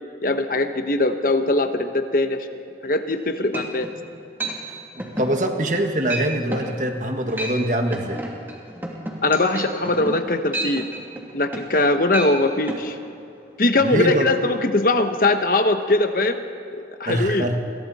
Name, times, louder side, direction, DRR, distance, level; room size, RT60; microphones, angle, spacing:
voice 1, 0.2-3.9 9.2-10.9 11.3-13.0 13.6-16.4 16.7-17.5, left 2 dB, 50° left, 7 dB, 1.2 m, -21 dB
sound 1, 3.1-3.2 3.5-4.0 4.4-4.6 5.0-5.3 5.7-5.8 6.1-6.3 6.5-6.7 7.2-7.6 7.9-11.8 12.1-12.3 12.7-12.8, right 1 dB, 10° right, 2.8 m, -30 dB
voice 2, 5.0-8.2 13.8-14.3 17.1-17.6, right 1 dB, 45° right, 4 dB, 1.8 m, -23 dB
30.0 x 23.0 x 4.3 m, 2.6 s
head